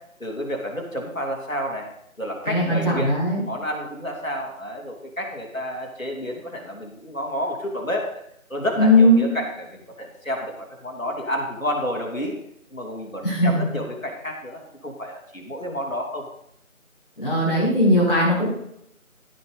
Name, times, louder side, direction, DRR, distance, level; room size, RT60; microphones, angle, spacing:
voice 1, 0.2-1.8 2.2-3.1 3.4-8.2 8.5-10.5 10.8-12.3 12.7-16.3, equal, 70° left, 1 dB, 3.3 m, -30 dB
voice 2, 2.4-3.4 8.8-9.2 13.2-13.6 17.2-18.5, left 1 dB, 40° left, -9 dB, 4.3 m, -18 dB
15.0 x 5.7 x 5.3 m, 0.74 s
figure-of-eight pair, 175°, 41 cm